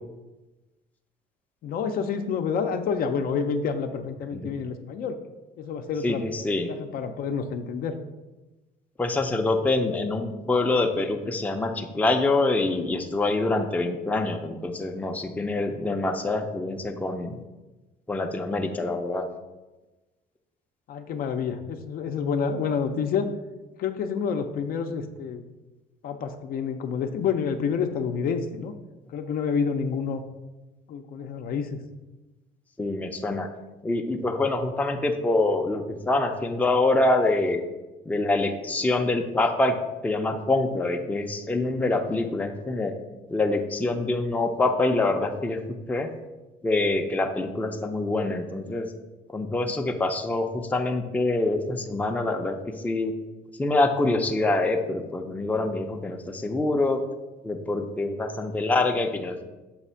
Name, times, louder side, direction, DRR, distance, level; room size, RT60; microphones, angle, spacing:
voice 1, 1.6-5.2 5.6-8.0 20.9-23.3 23.8-25.4 26.0-28.7 29.1-30.2 30.9-31.8, left 6 dB, 60° left, 7 dB, 0.5 m, -28 dB
voice 2, 6.0-6.7 9.0-17.4 18.1-19.3 32.8-33.5 33.8-37.6 38.1-39.8 40.0-42.9 43.3-45.6 45.9-46.1 46.6-48.9 49.3-53.1 53.6-57.0 57.4-59.4, left 2 dB, 10° left, 4 dB, 0.5 m, -25 dB
7.0 x 2.4 x 5.5 m, 1.1 s
cardioid pair, 110°, 17 cm